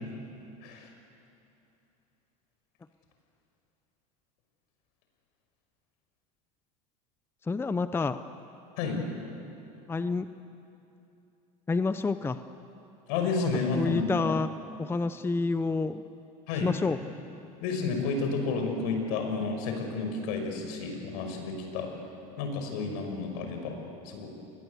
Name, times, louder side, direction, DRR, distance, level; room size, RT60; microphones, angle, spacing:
voice 1, 7.4-8.2 9.9-10.3 11.7-12.4 13.7-14.5 14.8-16.0 16.6-17.0, left 4 dB, 10° left, 11 dB, 0.7 m, -28 dB
voice 2, 13.1-14.0 16.5-16.7 17.6-21.9 22.4-23.7 24.0-24.3, left 4 dB, 70° left, 4 dB, 6.0 m, -31 dB
28.0 x 21.0 x 8.2 m, 2.8 s
supercardioid pair, 115°, 19 cm